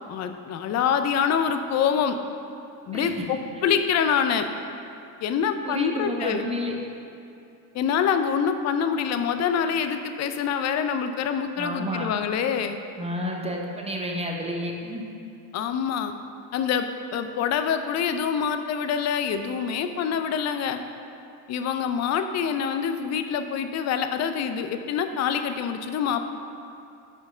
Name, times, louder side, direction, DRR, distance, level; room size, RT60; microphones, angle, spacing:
voice 1, 0.1-2.2 2.9-4.5 5.2-6.5 7.7-12.8 15.5-16.1 16.5-16.9 17.1-20.8 21.5-26.2, left 7 dB, 35° left, 8 dB, 0.4 m, -25 dB
voice 2, 5.4-6.7 11.6-12.1 13.0-15.0, equal, 15° right, 0 dB, 0.8 m, -30 dB
4.6 x 4.4 x 5.5 m, 2.6 s
supercardioid pair, 85°, 48 cm